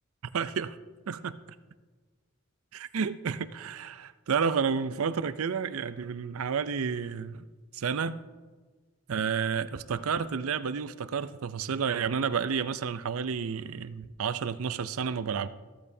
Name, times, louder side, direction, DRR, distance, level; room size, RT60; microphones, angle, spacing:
voice 1, 0.3-0.8 1.1-1.4 2.7-7.4 7.7-8.2 9.1-15.5, right 6 dB, 80° right, 14 dB, 0.5 m, -31 dB
14.0 x 14.0 x 2.7 m, 1.4 s
head